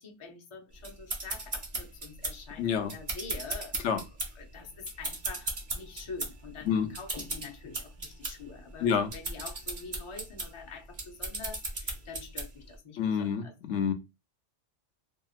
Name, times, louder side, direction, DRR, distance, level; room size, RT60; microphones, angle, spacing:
voice 1, 0.0-3.9 4.4-13.5, left 4 dB, 35° left, 0.6 m, -45 dB
sound 1, 0.8-12.7, right 2 dB, 40° right, 0.9 m, -37 dB
voice 2, 2.6-2.9 3.8-4.0 6.7-6.9 8.8-9.1 13.0-13.9, left 7 dB, 85° left, 0.9 m, -28 dB
2.8 x 2.8 x 2.4 m
omnidirectional pair, 1.1 m